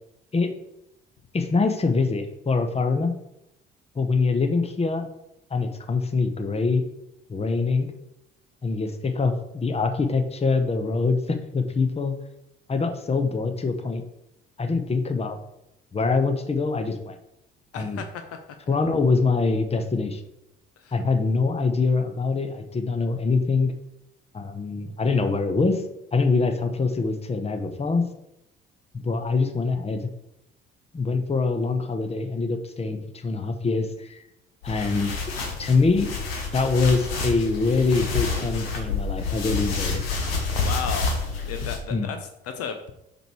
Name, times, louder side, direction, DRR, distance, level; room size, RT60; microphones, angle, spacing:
voice 1, 1.3-3.1 4.0-5.1 5.5-6.8 7.3-7.9 8.6-12.1 12.7-14.0 14.6-15.4 15.9-17.2 17.7-18.0 18.7-20.2 20.9-23.7 24.3-25.8 26.1-28.0 29.0-30.1 30.9-34.2 34.6-35.1 35.6-36.1 36.5-40.0 41.9-42.2, left 4 dB, 20° left, 7 dB, 0.9 m, -24 dB
voice 2, 17.7-18.4 20.8-21.0 40.6-41.2 41.5-42.9, left 7 dB, 55° left, 6 dB, 0.7 m, -34 dB
sound 1, 34.6-41.8, left 4 dB, 85° left, 1.0 m, -28 dB
5.2 x 4.7 x 4.5 m, 0.85 s
figure-of-eight pair, 50°, 29 cm